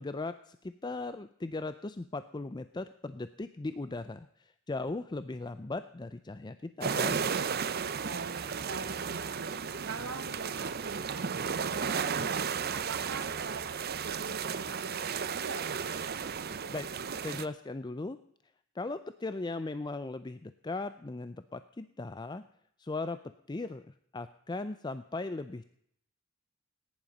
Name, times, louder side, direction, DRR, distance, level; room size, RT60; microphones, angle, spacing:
voice 1, 0.0-7.2 16.7-16.9 17.2-18.2 18.7-22.4 22.8-23.2 23.5-25.6, left 3 dB, 20° left, 12 dB, 0.5 m, -38 dB
sound 1, 6.8-17.5, right 6 dB, 50° right, 0.7 m, -34 dB
voice 2, 8.0-12.4 12.7-15.8, right 4 dB, 80° right, 3 dB, 1.1 m, -44 dB
19.0 x 10.5 x 5.3 m, 0.70 s
head